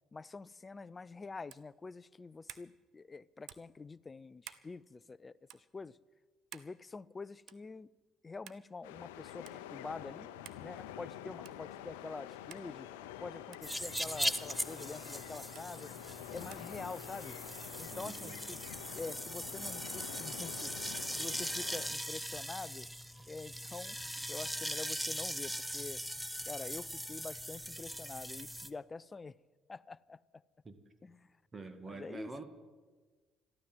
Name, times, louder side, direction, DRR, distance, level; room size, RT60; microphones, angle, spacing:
voice 1, 0.1-6.0 6.5-7.9 8.2-10.3 10.6-12.9 13.2-15.9 16.3-17.4 17.8-18.6 18.9-20.7 21.1-22.9 23.3-24.0 24.3-26.0 26.5-29.4 29.7-30.2 31.0-31.3 31.9-32.4, left 4 dB, 30° left, 0.5 m, -46 dB
sound 1, 1.5-1.7 2.5-2.7 3.5-3.7 4.4-4.7 5.5-5.6 6.5-6.7 7.5-7.7 8.5-8.6 9.5-9.6 10.4-10.7 11.4-11.7 12.5-12.7 13.5-13.7 14.5-14.7 15.5-15.7 16.5-16.7, right 12 dB, 70° right, 0.7 m, -52 dB
sound 2, 8.8-21.9, left 11 dB, 85° left, 0.7 m, -47 dB
sound 3, 13.6-28.7, equal, 5° right, 0.9 m, -40 dB
voice 2, 16.3-16.7 17.9-18.4 30.6-30.8 31.5-32.4, right 3 dB, 30° right, 2.0 m, -47 dB
13.5 x 12.5 x 7.8 m
hypercardioid pair, 60°, 0 cm